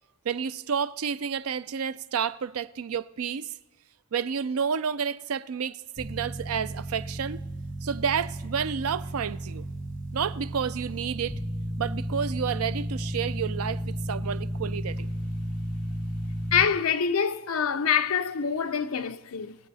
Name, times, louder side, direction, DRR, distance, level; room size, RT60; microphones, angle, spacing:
voice 1, 0.2-3.5 4.1-7.4 7.8-9.7 10.1-11.4 11.8-15.1, right 7 dB, 85° right, 0.5 m, -30 dB
sound 1, 6.0-16.6, equal, 25° left, 2.7 m, -33 dB
voice 2, 16.5-19.6, left 7 dB, 75° left, 0.6 m, -25 dB
20.5 x 7.7 x 4.1 m
head